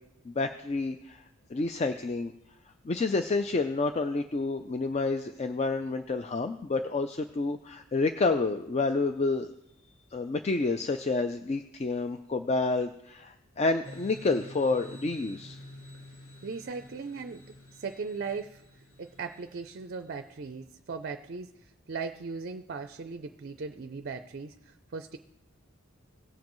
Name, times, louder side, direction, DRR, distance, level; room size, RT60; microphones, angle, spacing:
voice 1, 0.3-1.2 1.5-2.3 2.8-9.5 10.1-15.6, left 3 dB, 30° left, 8 dB, 0.3 m, -29 dB
sound 1, 13.8-20.3, left 1 dB, 45° left, 1.8 m, -49 dB
voice 2, 16.4-17.4 17.7-25.2, right 4 dB, 50° right, 9 dB, 0.4 m, -38 dB
17.5 x 7.4 x 3.1 m, 0.84 s
head